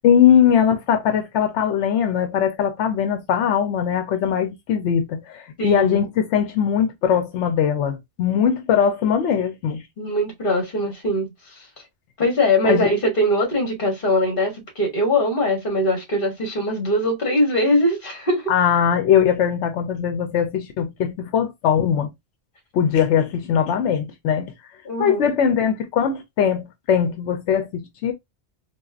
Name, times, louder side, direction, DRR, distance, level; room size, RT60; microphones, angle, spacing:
voice 1, 0.0-9.8 12.6-12.9 18.5-22.1 22.7-24.5 25.0-28.1, left 8 dB, 85° left, 0.9 m, -20 dB
voice 2, 5.6-6.0 10.0-11.3 11.6-11.7 12.2-18.5 24.8-25.3, left 1 dB, 50° left, 1.5 m, -21 dB
4.0 x 2.3 x 2.4 m
omnidirectional pair, 1.2 m